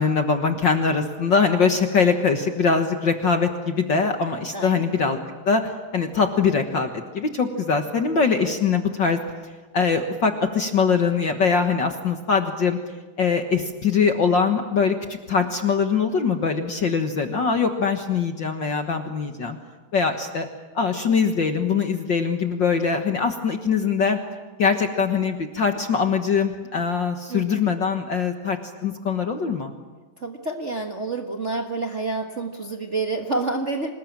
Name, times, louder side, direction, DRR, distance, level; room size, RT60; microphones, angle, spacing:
voice 1, 0.0-5.2 5.4-9.2 9.7-12.8 13.2-14.9 15.3-19.6 19.9-20.5 20.7-24.2 24.6-29.7, left 5 dB, 55° left, 6 dB, 1.3 m, -22 dB
voice 2, 4.5-4.9 27.3-27.6 30.2-33.9, right 3 dB, 65° right, 3 dB, 0.7 m, -28 dB
26.5 x 20.0 x 8.9 m, 1.3 s
omnidirectional pair, 4.0 m